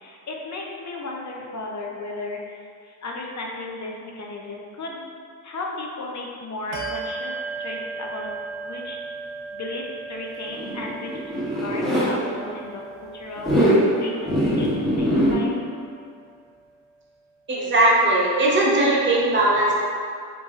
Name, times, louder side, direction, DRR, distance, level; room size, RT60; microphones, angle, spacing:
voice 1, 0.0-5.1 5.4-8.3 8.6-9.0 9.5-12.8 13.1-15.7, left 2 dB, 40° left, -1 dB, 0.5 m, -35 dB
Bell, 6.7-16.7, right 4 dB, 80° right, 0.5 m, -37 dB
Zipper (clothing), 10.5-12.1 13.4-13.8 14.3-15.3, equal, ahead, 0.9 m, -21 dB
voice 2, 17.5-19.7, right 2 dB, 25° right, -5 dB, 0.6 m, -19 dB
3.0 x 2.6 x 2.3 m, 2.2 s
cardioid pair, 45°, 43 cm